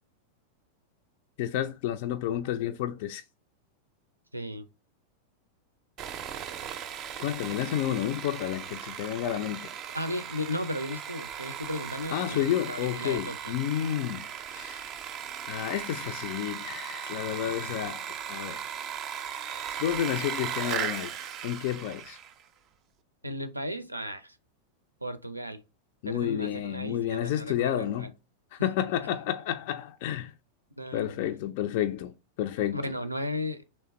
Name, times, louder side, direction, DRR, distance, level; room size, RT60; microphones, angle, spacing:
voice 1, 1.4-3.2 7.2-9.7 12.1-14.8 15.5-18.6 19.8-21.1 21.4-22.2 26.0-28.1 28.5-30.3 30.9-32.1 32.4-32.8, left 11 dB, 50° left, 0.4 m, -30 dB
voice 2, 4.3-4.7 9.9-13.5 23.2-24.4 25.0-25.6 26.0-28.1 29.0-29.1 30.8-31.2 32.7-33.6, left 1 dB, 85° right, 0.5 m, -35 dB
Sawing, 6.0-22.4, right 8 dB, 35° right, 0.5 m, -37 dB
3.3 x 3.1 x 4.3 m
figure-of-eight pair, 90°, 0 cm